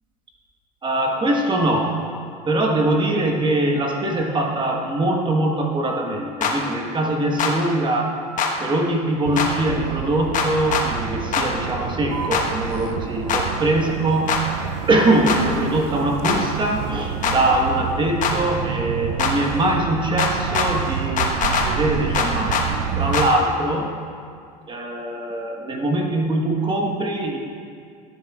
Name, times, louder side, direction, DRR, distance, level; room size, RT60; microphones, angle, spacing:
voice 1, 0.8-2.0 2.4-8.2 8.6-14.5 14.9-23.9 24.7-27.4, right 1 dB, 25° right, 1 dB, 1.2 m, -22 dB
sound 1, 6.4-6.5 7.4-7.5 8.4-8.5 9.4-9.5 10.3-10.9 11.3-11.5 12.3-12.4 13.3-13.4 14.3-14.4 15.3-15.4 16.2-16.4 17.2-17.4 18.2-18.4 19.2-19.3 20.2-20.7 21.2-21.7 22.1-22.7 23.1-23.3, left 6 dB, 40° left, 1.1 m, -21 dB
Motor vehicle (road), 9.3-23.3, right 8 dB, 70° right, 0.5 m, -29 dB
13.5 x 8.2 x 2.3 m, 2.2 s
hypercardioid pair, 90°, 19 cm